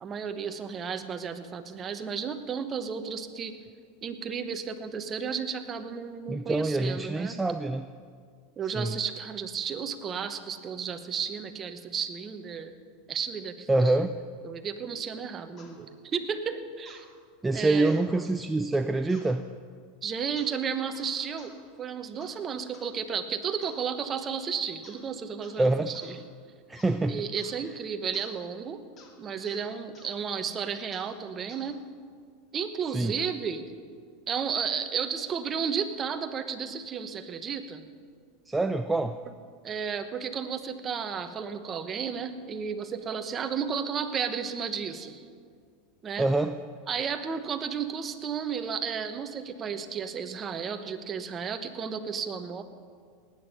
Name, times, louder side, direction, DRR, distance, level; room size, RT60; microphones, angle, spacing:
voice 1, 0.0-3.6 4.0-7.4 8.6-12.7 13.1-14.0 14.4-17.1 17.5-18.1 20.0-21.5 21.8-26.2 27.1-28.8 29.2-31.8 32.5-33.7 34.3-37.8 39.6-45.2 46.0-46.3 46.9-52.6, right 6 dB, 30° right, 9 dB, 1.1 m, -33 dB
voice 2, 6.3-7.9 8.7-9.0 13.7-14.1 17.4-19.5 25.6-25.9 26.7-27.2 32.9-33.1 38.5-39.2 46.2-46.6, right 2 dB, 10° right, 8 dB, 0.4 m, -26 dB
sound 1, 15.6-15.8 16.9-17.1 17.8-18.1 19.1-19.4 20.4-20.6 20.9-21.6 22.2-22.4 22.7-22.9 23.6-23.9 24.8-25.1 25.4-25.6 25.9-26.2 26.8-27.0 27.4-27.6 28.1-28.3 29.0-29.1 29.4-29.6 29.9-30.1 30.9-31.1 31.5-31.7, left 4 dB, 35° left, 2.2 m, -54 dB
19.0 x 9.2 x 5.6 m, 2.1 s
supercardioid pair, 115°, 0 cm